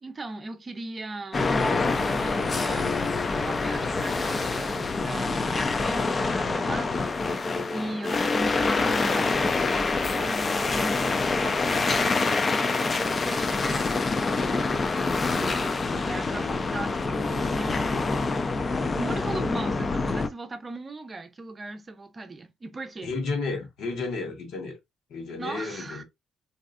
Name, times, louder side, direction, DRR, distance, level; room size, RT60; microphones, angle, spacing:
voice 1, 0.0-7.2 7.7-14.9 15.1-17.8 18.9-23.1 25.4-26.0, right 2 dB, 30° right, 0.6 m, -38 dB
sound 1, 1.3-20.3, left 3 dB, 35° left, 0.5 m, -26 dB
voice 2, 23.0-24.8 25.1-26.0, left 3 dB, 80° left, 1.2 m, -32 dB
3.2 x 2.7 x 2.4 m
cardioid pair, 90°, 0 cm